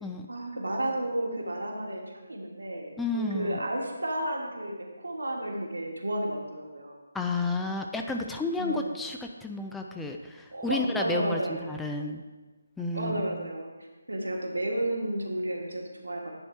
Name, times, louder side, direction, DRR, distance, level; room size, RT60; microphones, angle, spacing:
voice 1, 0.3-7.0 8.6-9.0 10.5-11.7 12.9-13.7 14.1-16.3, right 1 dB, 75° right, 0 dB, 1.6 m, -32 dB
voice 2, 3.0-3.6 7.1-12.2 12.8-13.4, left 2 dB, 5° left, 3 dB, 0.4 m, -31 dB
9.9 x 4.2 x 4.3 m, 1.2 s
figure-of-eight pair, 150°, 0 cm